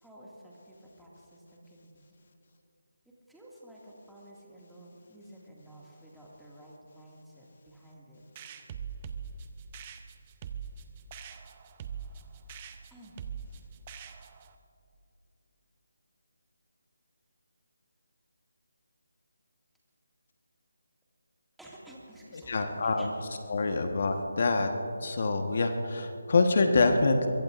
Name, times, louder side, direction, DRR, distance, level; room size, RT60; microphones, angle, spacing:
voice 1, 0.0-2.2 3.3-8.2 10.2-10.4 12.9-13.2 21.6-23.1 23.6-23.7, right 1 dB, ahead, -6 dB, 2.1 m, -52 dB
sound 1, 8.4-14.5, right 7 dB, 25° right, 0.7 m, -42 dB
voice 2, 22.5-23.1 23.5-24.7 25.0-27.3, left 3 dB, 50° left, 5 dB, 1.3 m, -25 dB
23.5 x 23.0 x 2.5 m, 2.7 s
figure-of-eight pair, 165°, 0 cm